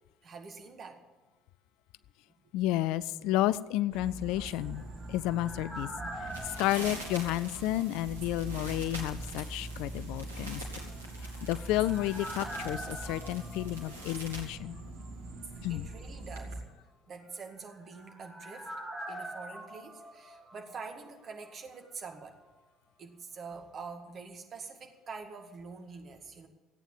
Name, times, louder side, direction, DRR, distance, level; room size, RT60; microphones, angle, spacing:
voice 1, 0.2-1.0 15.7-22.4 23.0-26.5, right 4 dB, 40° right, 4 dB, 2.1 m, -46 dB
voice 2, 2.5-4.8 5.1-5.9 6.6-10.6 11.5-14.8 15.6-15.9, left 15 dB, 60° left, 17 dB, 0.4 m, -31 dB
sound 1, 3.9-16.6, right 2 dB, 65° right, 2.3 m, -43 dB
sound 2, 4.4-8.3 8.5-8.6 11.0-14.7 15.0-15.1 17.4-21.2 21.5-21.6, right 1 dB, 5° right, 3.5 m, -45 dB
sound 3, 6.2-14.5, right 1 dB, 80° right, 1.9 m, -46 dB
14.5 x 9.1 x 8.7 m, 1.2 s
figure-of-eight pair, 55°, 0 cm